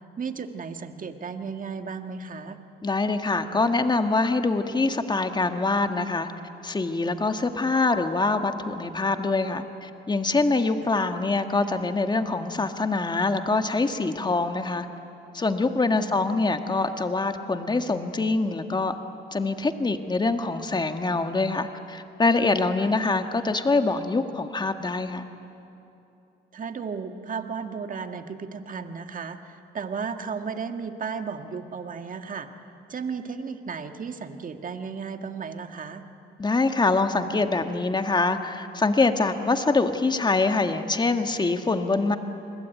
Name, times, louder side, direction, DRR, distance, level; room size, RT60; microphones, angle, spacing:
voice 1, 0.2-2.6 15.9-16.2 22.8-22.9 26.5-32.5 32.9-36.0, right 5 dB, 40° right, 6 dB, 1.8 m, -34 dB
voice 2, 2.8-6.3 6.6-14.9 15.3-19.0 19.3-25.2 36.4-42.2, left 3 dB, 20° left, 7 dB, 1.7 m, -24 dB
29.0 x 21.5 x 9.3 m, 2.8 s
cardioid pair, 90°, 20 cm